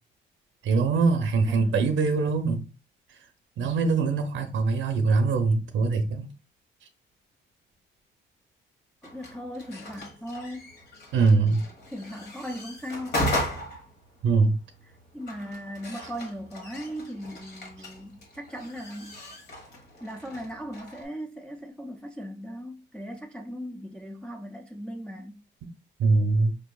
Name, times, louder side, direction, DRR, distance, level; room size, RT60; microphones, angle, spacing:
voice 1, 0.6-2.6 3.6-6.3 11.1-11.6 14.2-14.6 26.0-26.6, right 4 dB, 75° right, 0.6 m, -23 dB
voice 2, 1.5-1.8 9.0-10.7 11.9-13.3 15.1-19.2 20.0-25.4, equal, 5° left, 0.5 m, -38 dB
sound 1, 9.0-21.1, left 1 dB, 60° left, 1.4 m, -37 dB
5.1 x 2.7 x 2.3 m
cardioid pair, 80°, 20 cm